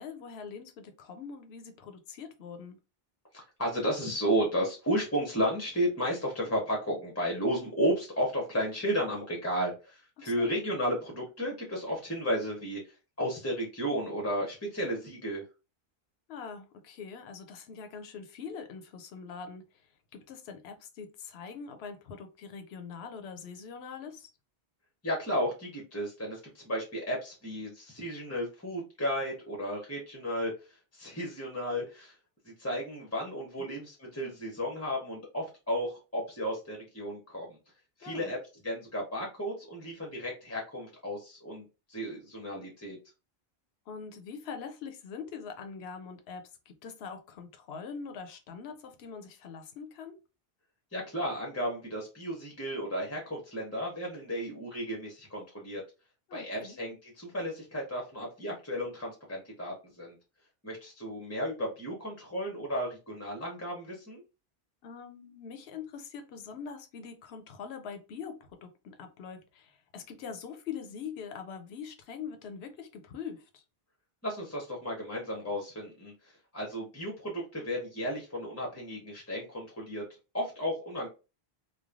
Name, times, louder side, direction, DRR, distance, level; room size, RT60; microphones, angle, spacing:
voice 1, 0.0-2.8 10.2-10.6 16.3-19.6 20.1-24.3 33.6-33.7 38.0-38.3 43.9-50.2 56.3-56.8 64.8-73.6, left 6 dB, 80° left, 0.8 m, -43 dB
voice 2, 3.3-15.4 25.0-30.5 30.9-32.1 32.4-37.6 38.0-38.4 38.6-43.0 50.9-55.8 56.3-60.2 60.6-64.2 74.2-80.1 80.3-81.1, equal, 15° left, 0.7 m, -33 dB
3.2 x 2.2 x 2.4 m
omnidirectional pair, 1.1 m